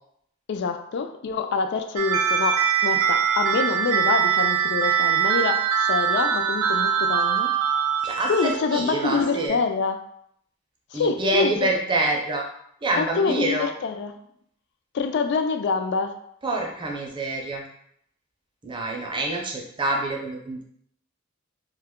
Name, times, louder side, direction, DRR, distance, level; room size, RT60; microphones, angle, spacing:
voice 1, 0.5-7.5 8.3-10.0 10.9-11.7 13.0-14.1 14.9-16.2, left 5 dB, 55° left, 7 dB, 0.3 m, -26 dB
sound 1, 2.0-9.5, right 8 dB, 80° right, 0.3 m, -23 dB
voice 2, 8.0-9.6 10.9-12.4 12.8-13.7 16.4-17.6 18.6-20.6, right 2 dB, 25° right, 0 dB, 0.5 m, -26 dB
2.8 x 2.2 x 3.5 m, 0.70 s
head